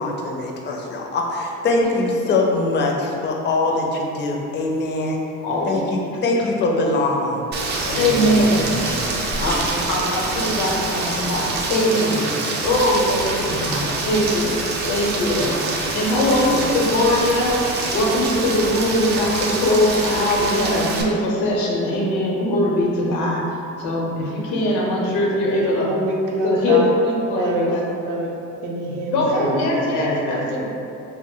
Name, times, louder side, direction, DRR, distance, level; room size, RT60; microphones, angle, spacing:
voice 1, 0.0-5.2 5.7-7.4 7.8-9.1, left 2 dB, 35° left, 0 dB, 0.4 m, -23 dB
voice 2, 5.4-5.9 7.9-8.8 9.4-9.6 9.9-12.3 12.6-14.5 14.9-15.5 15.9-17.6 17.9-23.4 23.8-25.9 26.4-27.8 29.1-30.6, left 1 dB, 90° left, -3 dB, 0.7 m, -21 dB
Rain, 7.5-21.0, right 3 dB, 35° right, 0.4 m, -26 dB
voice 3, 16.4-16.8 25.8-26.9 27.3-27.8 28.0-28.4 28.6-30.6, right 1 dB, 70° right, -1 dB, 0.6 m, -26 dB
2.6 x 2.0 x 3.7 m, 2.7 s
cardioid pair, 115°, 32 cm